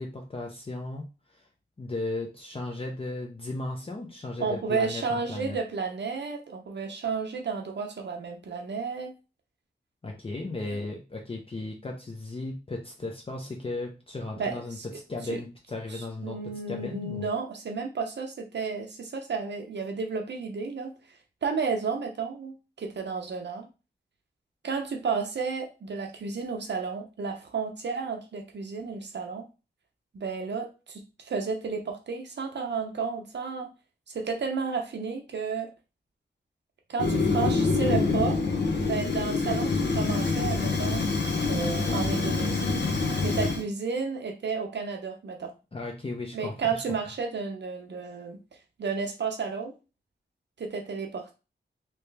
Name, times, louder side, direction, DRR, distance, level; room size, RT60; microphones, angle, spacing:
voice 1, 0.0-1.5 1.8-5.6 10.0-14.8 15.1-16.4 16.7-17.3 45.7-46.8, left 2 dB, 30° left, 1 dB, 0.6 m, -36 dB
voice 2, 4.4-9.1 10.7-10.8 14.4-14.9 15.2-15.4 15.9-23.7 24.6-29.5 30.1-33.7 34.1-35.7 36.9-38.4 38.9-41.1 41.5-42.9 43.2-45.5 46.3-48.4 48.8-49.7 50.6-51.3, right 5 dB, 70° right, 3 dB, 0.7 m, -32 dB
Fire, 37.0-43.6, left 3 dB, 65° left, 0.8 m, -26 dB
3.3 x 2.9 x 3.3 m, 0.30 s
wide cardioid pair, 100°, 19 cm